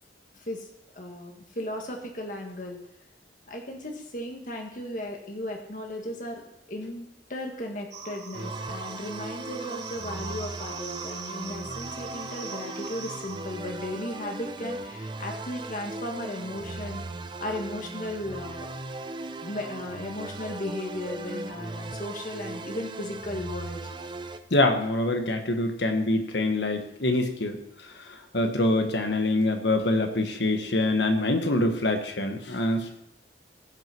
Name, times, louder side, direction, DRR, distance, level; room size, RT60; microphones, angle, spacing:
voice 1, 0.3-0.7 0.9-2.8 3.5-6.4 6.7-17.0 17.4-18.7 19.4-23.9, left 1 dB, 50° left, 2 dB, 1.8 m, -36 dB
sound 1, 7.9-13.6, right 5 dB, 80° right, 2.8 m, -40 dB
sound 2, 8.3-24.4, right 2 dB, 25° right, 0.6 m, -38 dB
voice 2, 24.5-27.6 28.3-33.0, left 2 dB, 85° left, 6 dB, 1.4 m, -25 dB
16.0 x 6.3 x 4.5 m, 0.81 s
head